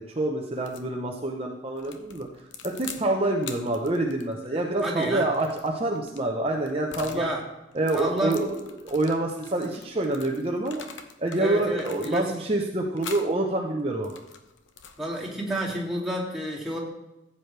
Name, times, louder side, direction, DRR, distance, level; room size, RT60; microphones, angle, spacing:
voice 1, 0.0-7.3 7.7-10.8 11.2-14.2, right 2 dB, 30° right, 0 dB, 1.0 m, -27 dB
sound 1, 0.6-0.9 1.8-3.1 3.4-7.3 7.7-11.4 11.7-12.5 13.0-13.3 13.9-16.0, left 6 dB, 75° left, 1.1 m, -44 dB
voice 2, 4.8-5.3 7.0-7.4 7.9-8.4 11.4-12.3 15.0-16.8, right 1 dB, ahead, -5 dB, 2.7 m, -30 dB
15.0 x 8.4 x 3.4 m, 0.98 s
head